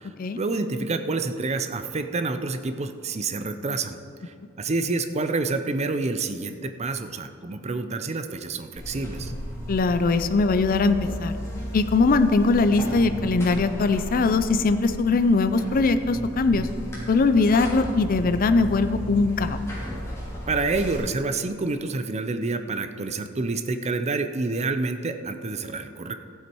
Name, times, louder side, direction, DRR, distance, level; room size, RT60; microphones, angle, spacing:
voice 1, 0.3-4.0 4.2-9.3 20.5-26.1, right 3 dB, 35° right, 8 dB, 0.6 m, -28 dB
Buzz, 8.8-21.0, equal, 15° left, 3.0 m, -35 dB
voice 2, 9.7-11.3 11.7-16.7 17.1-19.6, left 3 dB, 45° left, 10 dB, 0.4 m, -21 dB
14.5 x 8.1 x 4.6 m, 2.4 s
head